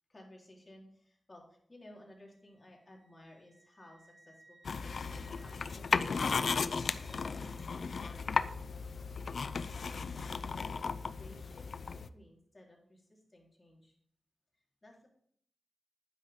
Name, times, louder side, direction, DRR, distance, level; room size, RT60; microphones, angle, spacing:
voice 1, 0.1-9.1 9.5-11.7 11.9-14.0 14.5-15.1, left 1 dB, 30° left, -2 dB, 3.9 m, -57 dB
Wind instrument woodwind instrument, 1.8-7.6, right 1 dB, 30° right, 3.3 m, -64 dB
sound 1, 4.6-12.1, left 5 dB, 65° left, 0.5 m, -35 dB
11.5 x 9.9 x 3.7 m, 0.63 s
wide cardioid pair, 100°, 0 cm